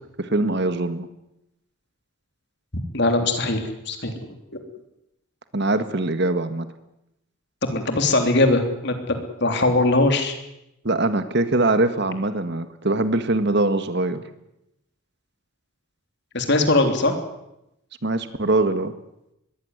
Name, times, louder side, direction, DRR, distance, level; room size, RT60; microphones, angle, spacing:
voice 1, 0.2-1.1 5.5-6.7 10.8-14.2 18.0-18.9, right 2 dB, 55° right, 11 dB, 1.8 m, -22 dB
voice 2, 2.9-4.1 7.6-10.4 16.3-17.1, left 2 dB, 55° left, 6 dB, 3.3 m, -21 dB
22.0 x 16.0 x 9.7 m, 0.85 s
head